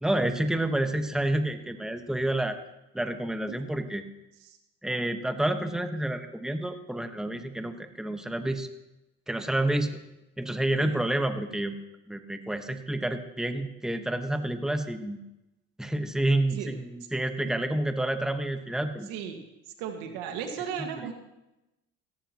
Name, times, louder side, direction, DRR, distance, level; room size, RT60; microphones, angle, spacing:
voice 1, 0.0-2.6 2.9-4.0 4.8-8.7 9.3-10.0 10.4-11.7 12.1-15.2 15.8-19.1 21.0-21.1, right 1 dB, ahead, 7 dB, 1.2 m, -29 dB
voice 2, 19.1-19.4 19.8-21.1, right 8 dB, 85° right, 5 dB, 1.8 m, -35 dB
17.5 x 14.0 x 3.0 m, 0.92 s
supercardioid pair, 80°, 32 cm